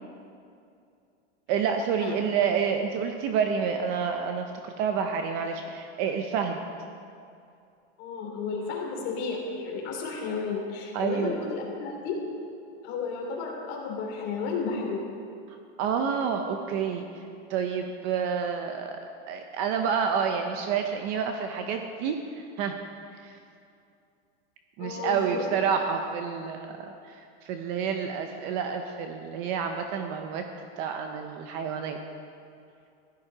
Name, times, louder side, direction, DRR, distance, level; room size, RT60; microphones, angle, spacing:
voice 1, 1.5-6.6 10.9-11.4 15.8-17.2 17.5-19.0 19.3-22.8 23.2-23.4 24.8-30.4 30.8-32.0, right 7 dB, 30° right, 5 dB, 0.5 m, -29 dB
voice 2, 8.0-12.2 12.8-15.0 24.8-25.4, left 4 dB, 35° left, -1 dB, 2.9 m, -32 dB
15.5 x 11.5 x 4.9 m, 2.5 s
supercardioid pair, 170°, 33 cm